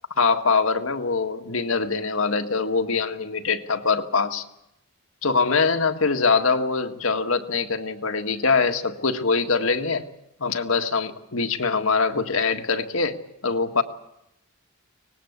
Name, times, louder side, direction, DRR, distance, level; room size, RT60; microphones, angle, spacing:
voice 1, 0.2-4.4 5.2-10.1 10.4-13.8, left 4 dB, 70° left, 6 dB, 1.7 m, -23 dB
24.5 x 19.5 x 8.2 m, 0.84 s
head